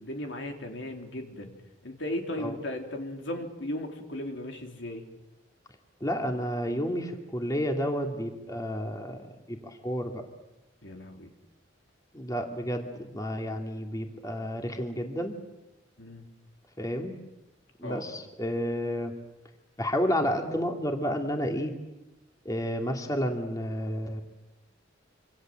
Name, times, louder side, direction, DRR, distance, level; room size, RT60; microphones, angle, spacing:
voice 1, 0.0-1.5 1.8-5.0 10.8-11.3 16.0-16.2 17.8-18.1, left 1 dB, 70° left, 3 dB, 3.4 m, -36 dB
voice 2, 6.0-10.2 12.1-15.4 16.8-17.2 17.8-19.1 19.8-21.7 22.4-24.2, equal, 20° left, 3 dB, 2.5 m, -31 dB
26.5 x 26.5 x 7.7 m, 0.98 s
head